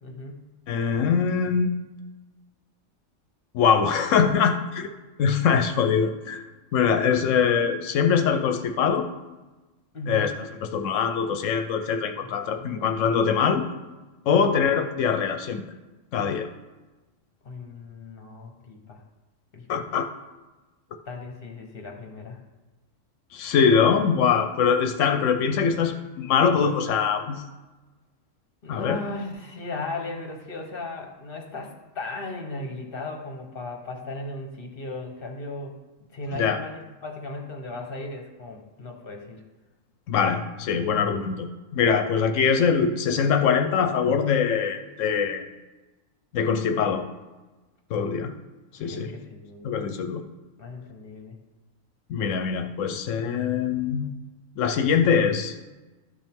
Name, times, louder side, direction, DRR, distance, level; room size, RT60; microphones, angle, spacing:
voice 1, 0.0-0.5 9.9-10.4 12.2-12.8 14.2-14.5 17.4-19.0 19.5-19.8 21.1-22.4 28.6-39.4 48.8-50.0 50.6-51.3, left 2 dB, 50° left, 2 dB, 1.4 m, -37 dB
voice 2, 0.7-1.7 3.5-4.9 5.2-6.4 6.7-9.1 10.1-13.6 14.3-15.6 16.1-16.5 19.7-20.1 23.3-27.5 28.7-29.0 36.3-36.6 40.1-45.5 46.3-47.0 47.9-48.3 48.8-49.1 49.6-50.2 52.1-54.1 54.6-55.5, left 6 dB, 80° left, 7 dB, 1.0 m, -23 dB
13.0 x 5.4 x 3.6 m, 1.2 s
omnidirectional pair, 1.3 m